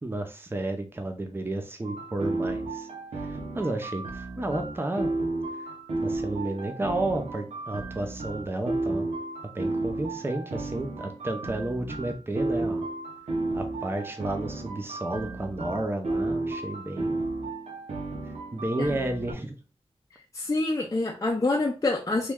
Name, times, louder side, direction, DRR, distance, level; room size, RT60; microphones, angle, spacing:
voice 1, 0.0-2.9 3.2-5.1 6.0-9.1 9.5-12.9 13.5-17.2 18.5-19.5, right 2 dB, 20° right, 5 dB, 0.5 m, -32 dB
sound 1, 1.8-19.3, right 2 dB, 90° right, 0.9 m, -33 dB
voice 2, 20.3-22.3, left 2 dB, 30° left, 0 dB, 0.5 m, -26 dB
3.1 x 2.3 x 3.5 m, 0.33 s
wide cardioid pair, 80°, 11 cm